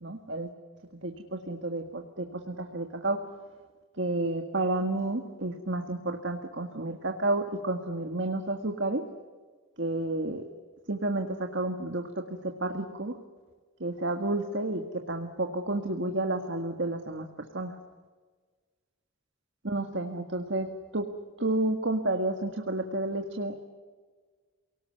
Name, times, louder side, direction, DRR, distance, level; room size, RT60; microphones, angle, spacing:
voice 1, 0.0-0.5 1.0-3.2 4.0-9.0 9.8-10.5 10.9-13.1 13.8-17.8 19.6-20.7 20.9-21.1 21.4-23.6, right 2 dB, 55° right, 4 dB, 1.8 m, -31 dB
28.5 x 19.0 x 9.7 m, 1.4 s
head